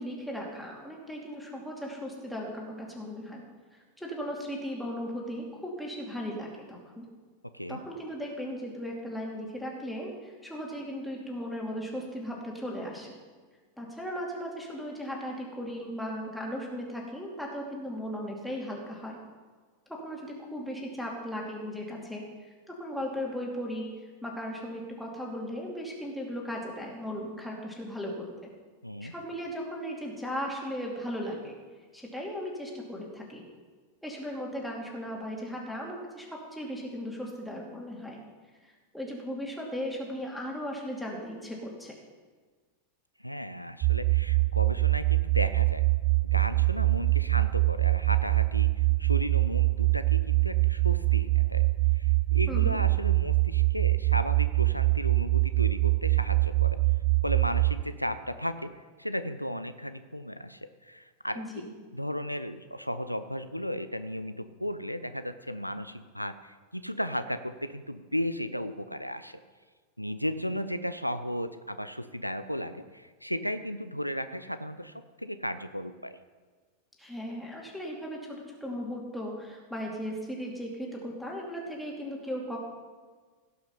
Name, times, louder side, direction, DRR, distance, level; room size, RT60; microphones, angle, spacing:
voice 1, 0.0-3.4 4.0-7.1 7.7-13.2 13.8-19.2 19.9-22.2 22.7-23.9 24.2-28.3 29.0-31.5 31.9-33.4 34.0-38.2 38.6-41.9 52.5-52.8 61.3-61.7 77.0-82.6, equal, ahead, -2 dB, 2.6 m, -37 dB
voice 2, 28.8-29.1 43.2-45.8 46.3-51.6 51.9-56.8 57.2-61.4 61.9-69.4 70.0-76.2, equal, 90° left, 11 dB, 0.5 m, -35 dB
sound 1, 43.8-57.8, right 23 dB, 40° right, 0.4 m, -24 dB
17.0 x 5.7 x 5.6 m, 1.5 s
figure-of-eight pair, 90°, 0 cm